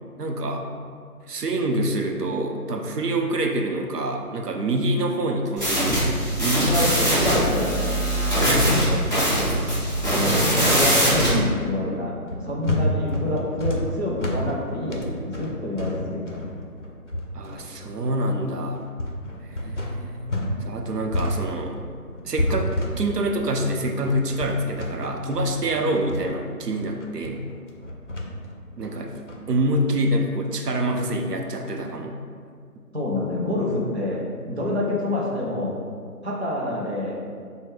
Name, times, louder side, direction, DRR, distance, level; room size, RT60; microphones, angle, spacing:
voice 1, 0.2-0.7 1.3-6.1 6.4-6.7 8.3-9.3 17.3-18.8 19.4-21.8 22.2-27.5 28.8-32.2, right 1 dB, 90° right, 3 dB, 0.6 m, -26 dB
sound 1, 5.6-11.3, equal, 30° right, 1.4 m, -21 dB
voice 2, 6.7-7.9 10.6-12.2 12.4-16.5 32.9-35.8 36.2-37.1, left 1 dB, 45° right, -5 dB, 0.6 m, -27 dB
sound 2, 12.3-20.6 20.8-29.6, left 1 dB, 55° left, 0.5 m, -30 dB
5.0 x 2.2 x 3.1 m, 2.1 s
figure-of-eight pair, 175°, 46 cm